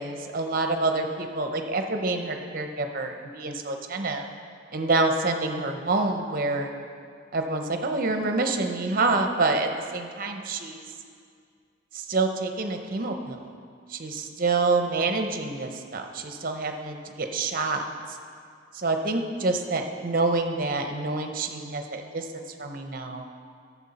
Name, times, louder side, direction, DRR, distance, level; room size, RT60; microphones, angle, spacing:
voice 1, 0.0-4.2 4.7-6.7 7.3-10.8 11.9-13.4 13.9-18.2 18.7-23.3, right 3 dB, 50° right, 5 dB, 0.8 m, -27 dB
12.5 x 7.3 x 4.2 m, 2.2 s
head